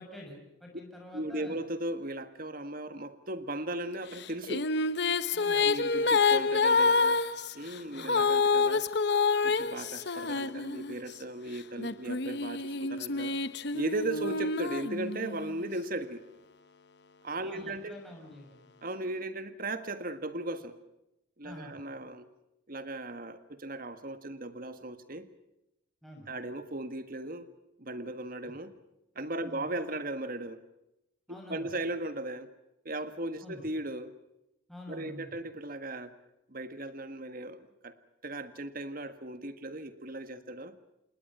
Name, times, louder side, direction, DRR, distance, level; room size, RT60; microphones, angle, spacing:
voice 1, 0.0-1.6 5.3-5.7 8.0-8.2 14.1-14.2 17.4-18.6 21.4-21.8 26.0-26.3 29.4-29.7 31.3-31.7 33.4-33.6 34.7-35.3, left 1 dB, ahead, -1 dB, 6.6 m, -47 dB
voice 2, 1.1-4.7 5.5-7.2 7.5-8.8 9.4-13.4 13.7-16.2 17.2-18.0 18.8-20.8 21.4-22.2 22.7-25.3 26.3-27.5 27.8-28.7 29.1-30.6 31.3-32.5 32.8-34.2 34.9-36.1 36.5-37.9 38.2-40.8, right 1 dB, 45° right, 10 dB, 1.7 m, -37 dB
Female singing, 4.2-11.1 11.8-15.5, left 4 dB, 55° left, 1.0 m, -28 dB
28.5 x 20.0 x 5.7 m, 0.88 s
head